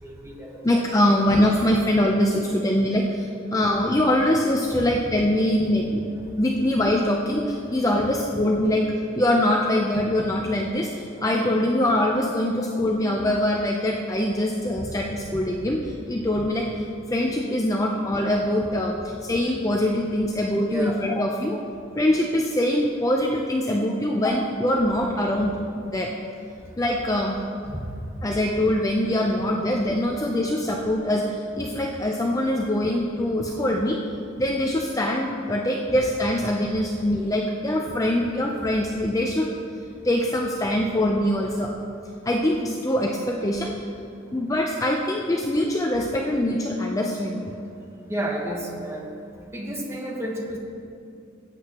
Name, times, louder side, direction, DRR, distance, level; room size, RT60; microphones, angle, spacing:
voice 1, 0.0-0.8 1.1-1.3 4.7-4.8 14.8-14.9 15.3-15.4 20.7-21.0 27.7-27.9 48.1-49.1 49.5-50.6, right 1 dB, 15° right, -1 dB, 1.2 m, -32 dB
voice 2, 0.6-6.0 6.4-8.9 9.1-16.7 17.1-21.6 22.0-25.6 25.9-26.1 26.8-27.4 28.2-34.0 34.4-39.5 40.0-41.7 42.2-43.7 44.3-47.5, left 1 dB, 15° left, 0 dB, 0.5 m, -23 dB
17.0 x 8.5 x 2.9 m, 2.4 s
head